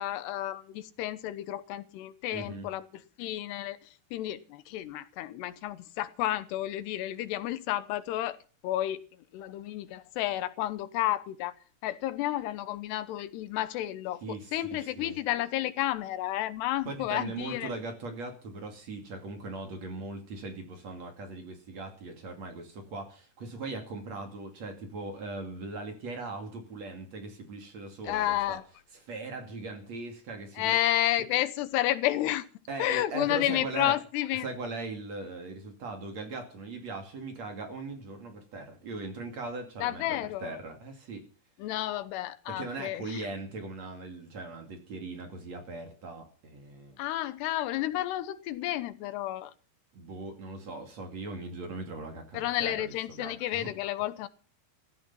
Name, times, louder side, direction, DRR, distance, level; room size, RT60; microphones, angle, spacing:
voice 1, 0.0-8.4 8.6-9.0 9.3-11.6 11.8-17.7 28.0-28.6 30.6-32.5 32.8-34.5 39.8-40.6 41.6-43.3 47.0-49.5 52.3-54.3, left 14 dB, 85° left, 3.0 m, -31 dB
voice 2, 2.3-2.7 14.2-14.5 15.0-15.2 16.9-28.6 29.1-30.7 32.7-34.0 34.4-41.3 42.5-47.0 49.9-53.7, right 3 dB, 45° right, 3.3 m, -39 dB
15.5 x 13.5 x 5.6 m
omnidirectional pair, 4.8 m